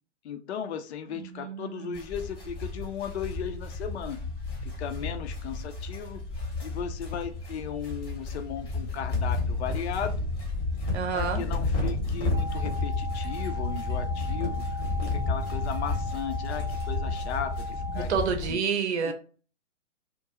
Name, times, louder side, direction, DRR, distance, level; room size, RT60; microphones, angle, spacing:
voice 1, 0.2-4.2 4.6-6.2 6.6-10.2 11.1-14.6 15.0-18.1 18.5-18.6 19.0-19.1, left 8 dB, 65° left, 8 dB, 0.5 m, -36 dB
voice 2, 1.2-2.0 10.9-11.4 17.9-19.1, right 6 dB, 65° right, 5 dB, 0.7 m, -29 dB
sound 1, 1.9-18.5, left 3 dB, 15° left, 0.8 m, -31 dB
sound 2, 12.3-18.1, left 1 dB, 25° right, 0.5 m, -39 dB
2.4 x 2.1 x 2.8 m, 0.38 s
figure-of-eight pair, 125°, 36 cm